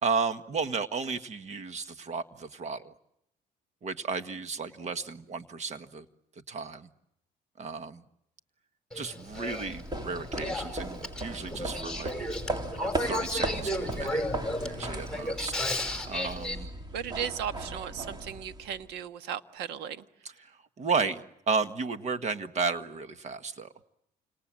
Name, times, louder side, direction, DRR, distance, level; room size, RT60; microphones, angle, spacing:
voice 1, 0.0-2.9 3.8-6.0 6.5-6.9 7.6-8.0 8.9-12.1 12.9-14.2 14.6-15.6 16.1-16.7 20.4-23.7, right 5 dB, 45° right, 10 dB, 1.6 m, -33 dB
Male speech man speaking / Female speech woman speaking / Conversation, 8.9-16.6, left 1 dB, 5° left, 5.2 m, -34 dB
sound 1, 9.3-18.9, right 2 dB, 25° right, 3.3 m, -37 dB
voice 2, 16.9-20.0, right 8 dB, 85° right, 10 dB, 1.5 m, -36 dB
29.5 x 27.0 x 7.6 m, 0.78 s
cardioid pair, 110°, 17 cm